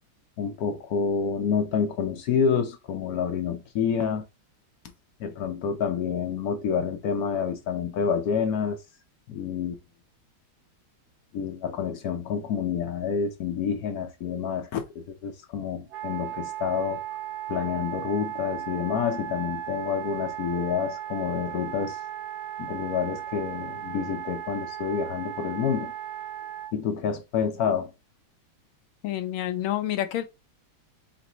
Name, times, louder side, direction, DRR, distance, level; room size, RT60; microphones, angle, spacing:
voice 1, 0.4-4.2 5.2-8.8 9.3-9.8 11.3-17.0 17.5-22.0 22.6-25.9 26.7-27.9, left 7 dB, 65° left, 1.0 m, -28 dB
Wind instrument woodwind instrument, 15.9-26.7, right 11 dB, 85° right, 0.8 m, -36 dB
voice 2, 29.0-30.2, left 12 dB, 85° left, 1.4 m, -28 dB
4.3 x 4.0 x 3.0 m
omnidirectional pair, 2.2 m